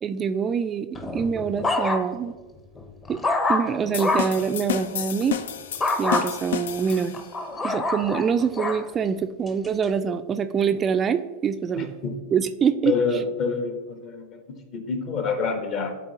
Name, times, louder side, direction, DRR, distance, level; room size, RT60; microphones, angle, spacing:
voice 1, 0.0-2.3 3.1-3.2 3.5-5.4 6.0-7.1 7.6-11.9 12.3-13.2, right 6 dB, 30° right, 9 dB, 0.3 m, -25 dB
sound 1, 0.9-2.3 2.8-4.4 5.8-6.2 6.9-8.8 9.5-9.8, left 2 dB, 20° left, 0.8 m, -26 dB
sound 2, 3.9-7.4, left 10 dB, 70° left, 0.4 m, -31 dB
voice 2, 11.7-12.2 12.8-14.4 14.7-15.9, left 4 dB, 45° left, 6 dB, 1.1 m, -27 dB
11.5 x 3.9 x 2.8 m, 1.3 s
hypercardioid pair, 90°, 0 cm